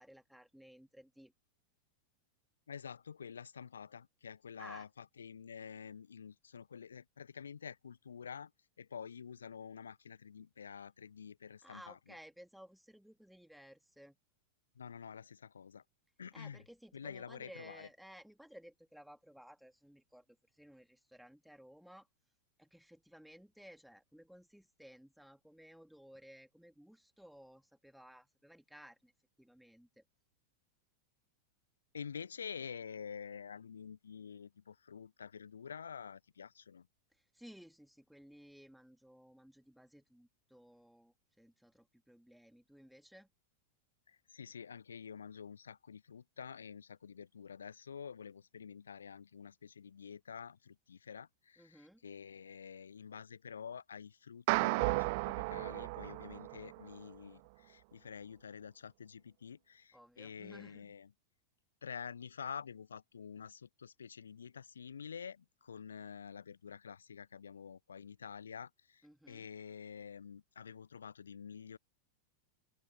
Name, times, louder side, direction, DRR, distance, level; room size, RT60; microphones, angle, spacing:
voice 1, 0.0-1.3 4.6-4.9 11.6-14.2 16.3-22.1 22.6-29.1 29.4-30.0 37.1-43.3 51.6-52.0 59.9-60.9 69.0-69.5, equal, ahead, 3.4 m, -57 dB
voice 2, 2.7-8.5 8.8-12.0 14.7-15.8 16.2-16.6 16.9-17.9 31.9-36.9 44.1-61.1 61.8-69.0 69.3-71.8, left 7 dB, 70° left, 1.3 m, -48 dB
sound 1, 54.5-57.0, right 28 dB, 45° right, 0.8 m, -34 dB
open air
figure-of-eight pair, 90°, 0 cm